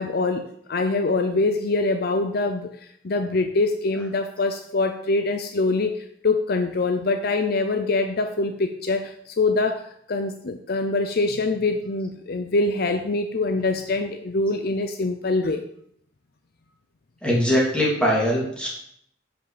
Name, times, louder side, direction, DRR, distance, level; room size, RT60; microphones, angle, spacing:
voice 1, 0.0-2.7 3.0-6.0 6.2-15.6, left 3 dB, 55° left, 7 dB, 0.6 m, -24 dB
voice 2, 17.2-18.7, equal, 5° left, -5 dB, 3.1 m, -21 dB
10.5 x 6.0 x 5.0 m, 0.68 s
head